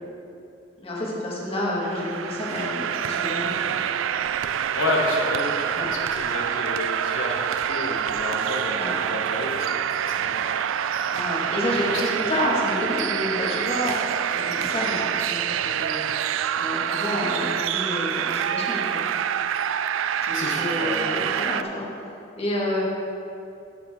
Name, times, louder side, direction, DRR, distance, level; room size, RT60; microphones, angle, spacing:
voice 1, 0.8-3.7 5.7-5.9 8.7-8.9 11.1-16.0 16.6-19.0 20.2-21.9 22.4-22.8, left 1 dB, 30° left, -5 dB, 1.9 m, -29 dB
sound 1, 1.8-21.6, right 9 dB, 85° right, 0.3 m, -26 dB
voice 2, 4.8-8.8 9.1-9.7 10.1-10.5 10.9-11.1 20.3-21.2, left 2 dB, 85° left, -1 dB, 1.1 m, -30 dB
9.2 x 9.0 x 3.7 m, 2.7 s
head